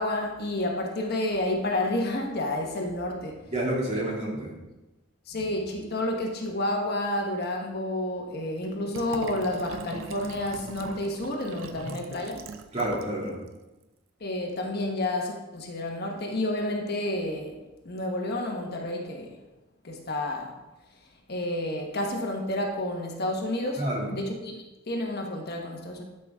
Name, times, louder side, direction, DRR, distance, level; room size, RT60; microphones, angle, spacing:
voice 1, 0.0-3.4 5.3-12.4 14.2-17.6 17.8-19.4 19.8-20.5 21.3-23.8 24.1-26.0, left 1 dB, 55° left, 1 dB, 1.3 m, -30 dB
voice 2, 3.5-4.5 12.7-13.4 23.8-24.1, right 1 dB, 35° right, -3 dB, 2.5 m, -29 dB
Liquid, 8.9-13.1 13.5-13.6, right 4 dB, 80° right, 0.6 m, -40 dB
12.0 x 6.0 x 3.6 m, 1.1 s
head